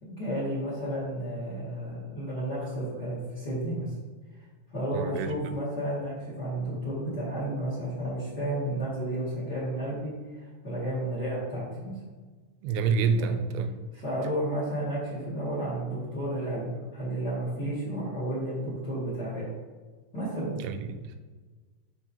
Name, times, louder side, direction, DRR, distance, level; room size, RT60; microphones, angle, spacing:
voice 1, 0.0-3.9 4.7-11.9 13.2-13.4 13.9-19.4 20.1-20.5, right 1 dB, 30° left, -7 dB, 2.1 m, -32 dB
voice 2, 4.9-5.3 12.6-13.7 20.6-21.2, right 5 dB, 85° right, 8 dB, 2.8 m, -28 dB
12.5 x 4.3 x 2.9 m, 1.3 s
omnidirectional pair, 5.0 m